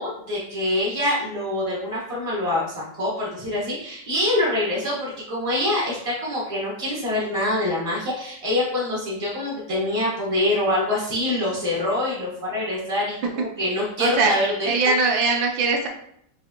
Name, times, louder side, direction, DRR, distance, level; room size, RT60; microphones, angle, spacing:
voice 1, 0.0-14.9, left 1 dB, 40° right, -5 dB, 0.4 m, -25 dB
voice 2, 14.0-14.3 14.7-15.9, right 4 dB, 85° right, 2 dB, 1.4 m, -21 dB
4.7 x 2.5 x 2.8 m, 0.69 s
omnidirectional pair, 2.1 m